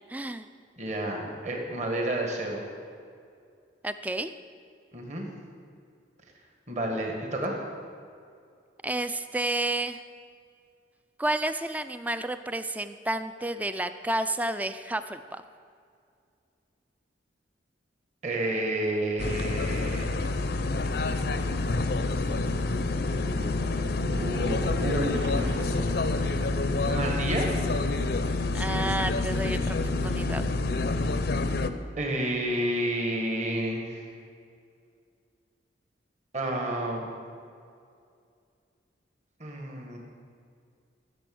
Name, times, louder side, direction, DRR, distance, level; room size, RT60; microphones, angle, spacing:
voice 1, 0.1-0.5 3.8-4.3 8.8-10.0 11.2-15.4 28.5-30.4, right 1 dB, 10° right, 11 dB, 0.4 m, -31 dB
voice 2, 0.8-2.6 4.9-5.3 6.7-7.6 18.2-20.2 22.3-26.2 26.8-27.5 32.0-34.0 36.3-37.1 39.4-40.0, right 1 dB, 40° right, 1 dB, 1.8 m, -31 dB
sound 1, 19.2-31.7, left 2 dB, 60° left, 0.6 m, -28 dB
sound 2, 24.1-27.6, right 1 dB, 75° right, 1.2 m, -38 dB
13.5 x 7.0 x 7.8 m, 2.3 s
head